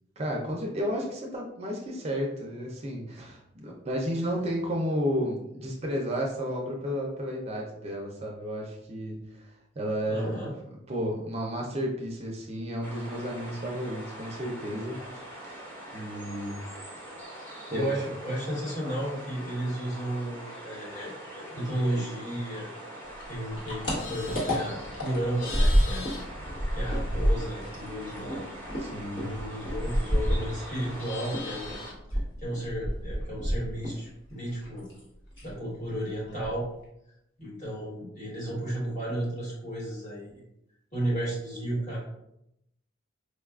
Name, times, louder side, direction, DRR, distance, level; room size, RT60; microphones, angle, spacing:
voice 1, 0.2-10.4 10.9-15.2 15.4-15.6 15.9-16.6 17.7-17.9 28.8-29.3, equal, 30° right, -1 dB, 0.5 m, -32 dB
voice 2, 10.1-10.5 17.7-22.7 23.3-26.1 26.7-28.4 29.1-31.7 32.1-34.9 35.4-36.7 37.4-40.4 40.9-42.0, right 1 dB, 35° left, -6 dB, 1.2 m, -33 dB
sound 1, 12.8-31.9, right 1 dB, 10° left, 0.7 m, -43 dB
sound 2, 23.2-26.2 26.5-31.0 31.3-34.1 34.3-35.0 35.3-35.6 35.9-36.0 36.3-36.8, equal, 60° left, 1.3 m, -28 dB
Livestock farm animals working animals, 23.9-27.4 27.7-30.2 30.5-32.1, left 3 dB, 80° left, 0.6 m, -44 dB
4.7 x 2.3 x 2.3 m, 0.81 s
head